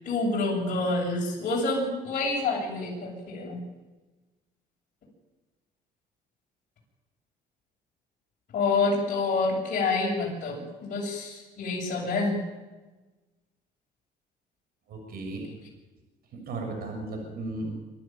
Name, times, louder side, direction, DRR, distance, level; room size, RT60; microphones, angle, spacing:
voice 1, 0.0-3.6 8.5-12.4, left 3 dB, 50° left, -4 dB, 7.7 m, -27 dB
voice 2, 14.9-15.5 16.5-17.8, right 2 dB, 65° right, 2 dB, 6.7 m, -35 dB
25.0 x 13.0 x 9.2 m, 1.2 s
cardioid pair, 110°, 17 cm